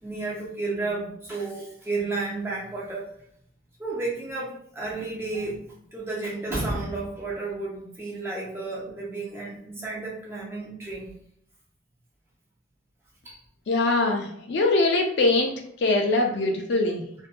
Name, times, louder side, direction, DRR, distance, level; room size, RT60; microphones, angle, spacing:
voice 1, 0.0-3.1 3.8-11.1 13.2-13.4, right 3 dB, 15° right, -4 dB, 0.6 m, -32 dB
voice 2, 13.7-17.0, left 2 dB, 60° left, 2 dB, 0.4 m, -23 dB
2.6 x 2.6 x 2.2 m, 0.69 s
head